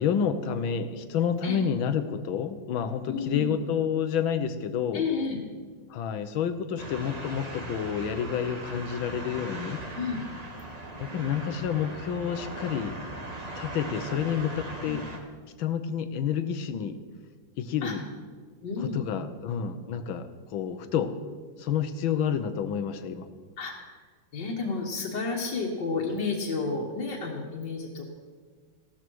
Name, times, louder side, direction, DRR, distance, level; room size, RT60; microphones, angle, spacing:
voice 1, 0.0-5.1 5.9-9.8 11.0-12.9 13.6-15.0 15.6-17.0 17.6-18.1 18.8-21.1 21.6-23.3, left 8 dB, 85° left, 11 dB, 1.7 m, -29 dB
voice 2, 3.1-3.5 4.9-5.4 9.9-10.2 17.8-18.0 18.6-19.0 23.6-24.0 24.3-28.0, left 4 dB, 65° left, -3 dB, 2.1 m, -31 dB
sound 1, 6.8-15.2, right 1 dB, 20° right, 1.4 m, -39 dB
16.0 x 13.0 x 4.7 m, 1.5 s
omnidirectional pair, 2.1 m